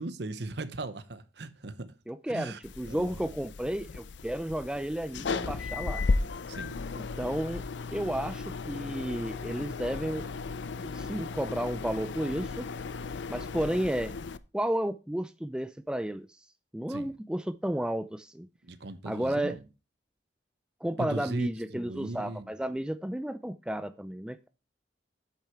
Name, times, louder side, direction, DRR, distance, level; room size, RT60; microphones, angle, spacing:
voice 1, 0.0-1.9 2.3-2.6 2.8-3.3 6.5-6.8 16.9-17.1 18.6-19.6 21.0-22.5, right 2 dB, 65° right, 0.9 m, -38 dB
voice 2, 2.1-6.0 7.2-7.6 7.9-10.3 10.8-12.7 13.3-14.1 14.5-16.3 16.7-18.5 19.0-19.6 20.8-24.5, right 1 dB, 5° right, 0.3 m, -32 dB
sound 1, 2.6-14.4, left 4 dB, 75° left, 0.5 m, -35 dB
8.4 x 6.5 x 4.5 m
head